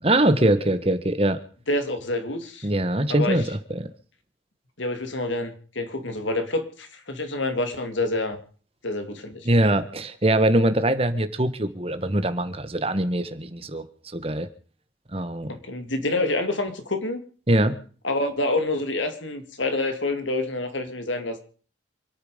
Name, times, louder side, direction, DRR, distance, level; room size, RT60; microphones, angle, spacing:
voice 1, 0.0-1.4 2.6-3.9 9.4-13.8 14.1-14.5 15.1-15.5 17.5-17.8, right 1 dB, 30° right, 11 dB, 1.4 m, -22 dB
voice 2, 1.7-2.7 3.1-3.4 4.8-8.4 8.8-9.5 15.5-17.2 18.0-21.4, left 2 dB, 85° left, 7 dB, 2.7 m, -27 dB
27.5 x 9.3 x 5.1 m, 0.43 s
head